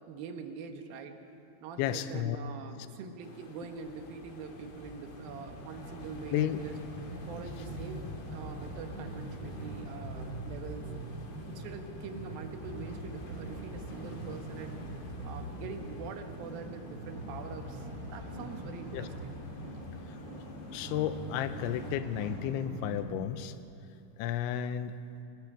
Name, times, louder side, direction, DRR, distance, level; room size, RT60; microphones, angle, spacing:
voice 1, 0.1-1.2 1.6-6.8 7.3-10.8 11.5-14.8 15.2-19.3, right 5 dB, 70° right, 5 dB, 2.3 m, -44 dB
voice 2, 1.8-2.4 6.3-6.6 18.9-19.1 20.7-23.5 24.2-25.0, left 11 dB, 80° left, 11 dB, 2.9 m, -32 dB
sound 1, 3.2-22.0, left 3 dB, 60° left, 1.4 m, -52 dB
sound 2, 3.7-23.1, right 1 dB, 30° right, 5.6 m, -42 dB
29.5 x 21.5 x 4.9 m, 2.7 s
omnidirectional pair, 5.7 m